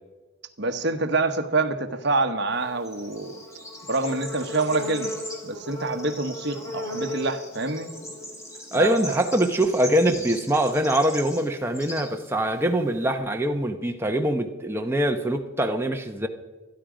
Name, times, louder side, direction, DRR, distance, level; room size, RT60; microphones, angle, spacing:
voice 1, 0.6-3.4 3.9-5.1 5.4-7.9 8.7-9.2, right 3 dB, 55° right, 6 dB, 1.2 m, -26 dB
Bird / Insect, 2.5-13.1, left 1 dB, 15° left, 2.5 m, -37 dB
voice 2, 8.7-16.3, right 1 dB, 10° right, 4 dB, 1.0 m, -23 dB
26.0 x 10.5 x 5.1 m, 1.3 s
head